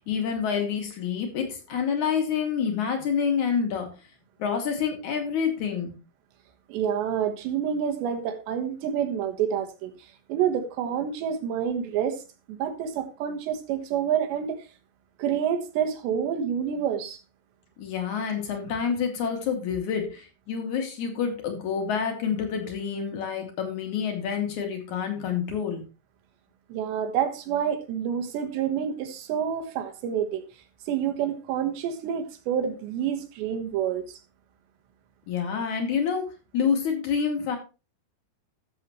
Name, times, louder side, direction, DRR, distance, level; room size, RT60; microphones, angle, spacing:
voice 1, 0.0-3.9 4.4-5.9 17.8-25.8 35.3-36.3 36.5-37.6, left 7 dB, 50° left, 3.2 m, -28 dB
voice 2, 6.7-9.9 10.3-12.2 12.5-14.6 15.2-17.2 26.7-30.4 30.9-34.2, right 8 dB, 80° right, 3.5 m, -28 dB
14.5 x 7.5 x 3.1 m
omnidirectional pair, 5.1 m